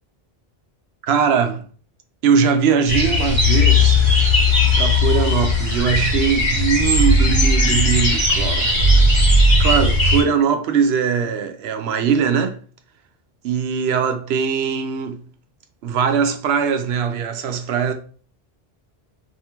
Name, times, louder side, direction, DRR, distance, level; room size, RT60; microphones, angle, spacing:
voice 1, 1.0-1.6 2.2-4.0 4.8-8.7 9.6-12.6 13.4-15.2 15.8-17.9, right 6 dB, 80° right, 0.8 m, -20 dB
sound 1, 2.9-10.2, left 2 dB, 50° left, 1.9 m, -16 dB
3.6 x 2.5 x 2.8 m
omnidirectional pair, 1.1 m